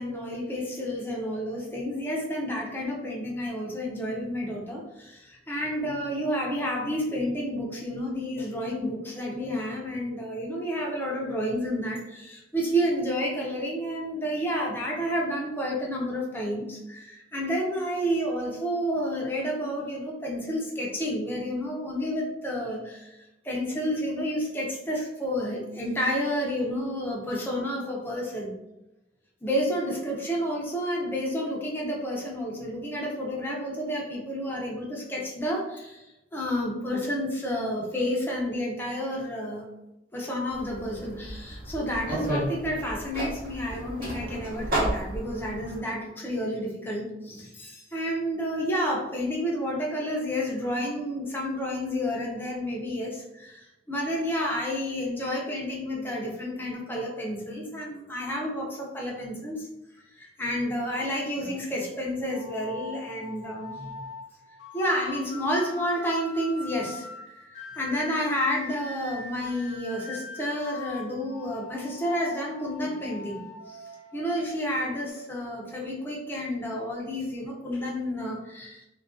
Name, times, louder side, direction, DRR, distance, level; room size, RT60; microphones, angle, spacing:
voice 1, 0.0-23.2 23.4-28.6 29.4-36.1 36.3-39.7 40.1-59.7 60.2-63.9 64.7-73.8 74.1-78.8, equal, 10° left, -2 dB, 0.5 m, -30 dB
sound 1, 40.5-45.8, right 1 dB, 55° right, 0.9 m, -33 dB
sound 2, 62.3-75.1, left 3 dB, 75° left, 0.6 m, -42 dB
2.4 x 2.2 x 2.4 m, 0.94 s
head